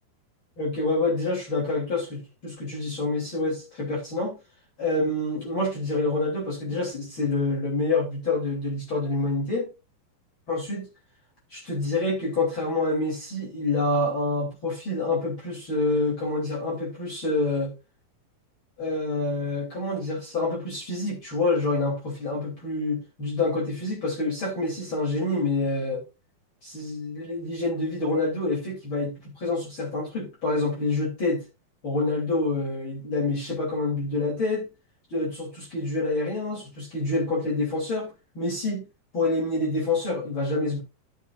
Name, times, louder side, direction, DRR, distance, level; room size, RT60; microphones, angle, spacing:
voice 1, 0.6-4.4 4.8-9.7 10.5-10.8 11.5-17.7 18.8-26.0 26.6-31.4 31.8-34.7 35.1-38.8 39.1-40.8, left 2 dB, 35° left, 3.5 m, -27 dB
13.0 x 7.0 x 2.4 m
omnidirectional pair, 4.2 m